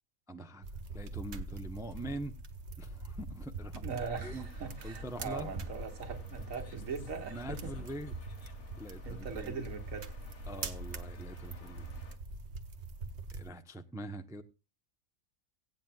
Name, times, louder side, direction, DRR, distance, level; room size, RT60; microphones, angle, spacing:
voice 1, 0.3-0.7 0.9-2.3 2.8-4.5 4.8-5.5 7.3-8.1 8.8-9.6 10.5-11.9 13.3-14.4, right 1 dB, 5° right, 0.6 m, -43 dB
sound 1, 0.6-13.5, right 3 dB, 55° right, 1.3 m, -43 dB
voice 2, 3.8-7.7 9.0-10.1, right 5 dB, 70° right, 1.8 m, -40 dB
sound 2, 4.2-12.2, left 3 dB, 80° left, 2.0 m, -53 dB
17.5 x 9.2 x 2.3 m
omnidirectional pair, 1.4 m